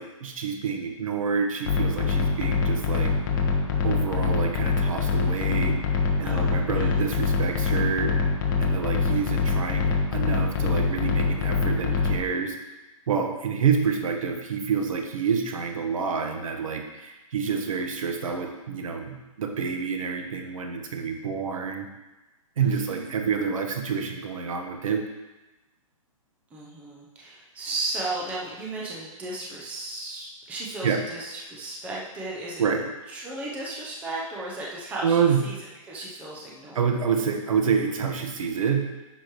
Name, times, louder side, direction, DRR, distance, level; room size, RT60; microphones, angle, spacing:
voice 1, 0.0-3.1 3.4-3.6 3.8-12.6 13.1-21.9 22.6-25.0 30.8-31.0 32.6-32.8 35.0-35.4 36.7-38.9, right 6 dB, 70° right, 3 dB, 1.4 m, -28 dB
sound 1, 1.6-12.2, left 4 dB, 35° left, 1.1 m, -24 dB
voice 2, 6.2-6.9 22.6-23.1 26.5-32.6 33.1-35.6 35.8-36.9, right 2 dB, 5° right, -4 dB, 0.7 m, -35 dB
10.5 x 6.3 x 3.1 m, 1.1 s
hypercardioid pair, 170°, 18 cm